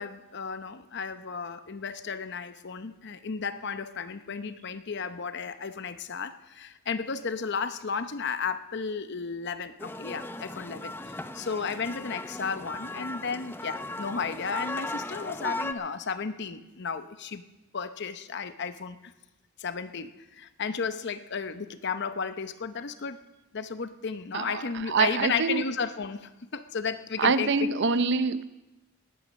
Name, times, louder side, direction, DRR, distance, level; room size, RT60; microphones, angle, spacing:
voice 1, 0.0-17.4 17.7-19.1 19.6-23.2 23.5-27.7, left 5 dB, 60° left, 11 dB, 0.8 m, -34 dB
sound 1, 9.8-15.7, left 1 dB, 10° left, 0.6 m, -37 dB
voice 2, 24.3-25.6 27.2-28.4, right 4 dB, 60° right, 14 dB, 0.6 m, -25 dB
18.0 x 10.0 x 6.4 m, 1.0 s
head